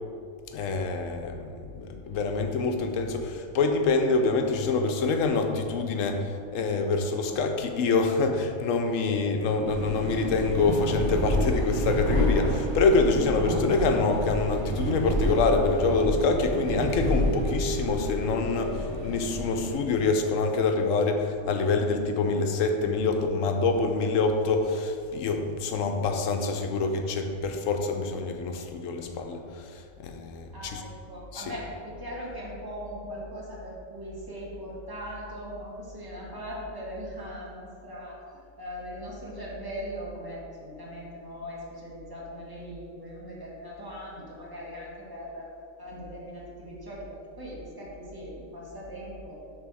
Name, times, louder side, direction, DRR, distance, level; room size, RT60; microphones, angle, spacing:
voice 1, 0.5-30.8 31.3-31.4, left 3 dB, 80° left, 5 dB, 1.0 m, -26 dB
sound 1, 9.6-19.8, equal, 35° right, 0.8 m, -29 dB
voice 2, 30.5-45.5 45.8-49.4, equal, 15° right, -5 dB, 1.5 m, -39 dB
6.6 x 3.4 x 6.1 m, 2.3 s
omnidirectional pair, 1.3 m